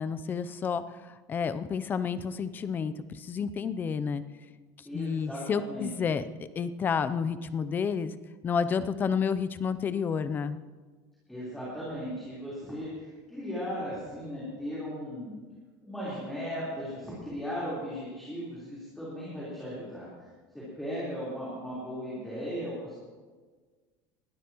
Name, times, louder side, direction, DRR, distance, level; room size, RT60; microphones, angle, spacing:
voice 1, 0.0-4.2 4.9-8.1 8.4-10.6, left 6 dB, 20° left, 12 dB, 0.5 m, -30 dB
voice 2, 4.8-5.9 11.3-15.3 15.8-20.1 20.5-22.9, equal, 5° left, -9 dB, 3.9 m, -37 dB
21.0 x 13.0 x 3.0 m, 1.4 s
cardioid pair, 170°, 9 cm